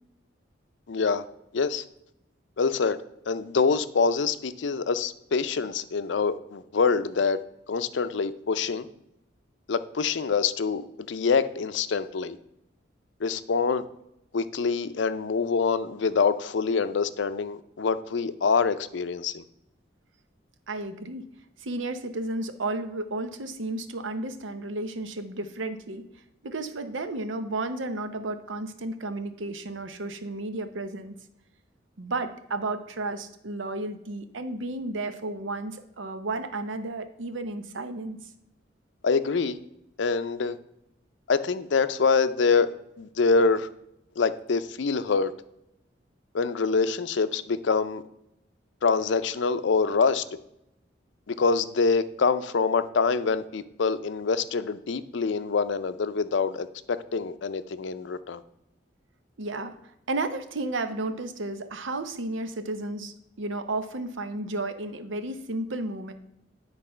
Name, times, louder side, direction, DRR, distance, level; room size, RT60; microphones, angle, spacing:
voice 1, 0.9-1.2 1.5-1.8 2.6-3.0 3.3-7.4 7.7-8.9 9.7-12.4 13.2-13.8 14.3-19.4 39.0-39.6 40.0-40.6 41.3-43.7 44.2-45.3 46.3-48.0 48.8-50.4 51.3-58.4, left 5 dB, 75° left, 12 dB, 0.5 m, -25 dB
voice 2, 20.7-21.3 21.6-26.1 26.4-31.2 32.0-38.2 59.4-59.7 60.1-66.1, right 2 dB, 85° right, 9 dB, 0.8 m, -33 dB
9.9 x 4.0 x 5.6 m, 0.81 s
head